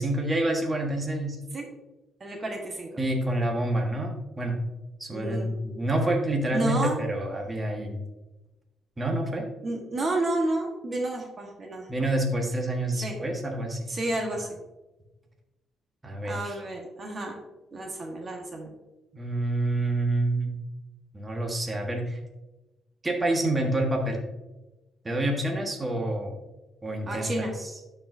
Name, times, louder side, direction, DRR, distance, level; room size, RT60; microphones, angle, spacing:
voice 1, 0.0-1.4 3.0-4.6 5.0-8.0 9.0-9.4 11.9-13.9 16.0-16.6 19.1-20.6 21.1-22.2 23.0-24.2 25.0-26.4 26.8-27.7, right 1 dB, 20° right, 0 dB, 1.5 m, -28 dB
voice 2, 2.2-3.0 5.1-5.5 6.5-7.0 9.6-11.9 12.9-13.1 13.9-14.5 16.2-17.4 17.7-18.7 27.1-27.5, right 2 dB, 40° right, 1 dB, 1.4 m, -31 dB
12.0 x 4.7 x 2.7 m, 1.0 s
cardioid pair, 90°, 0 cm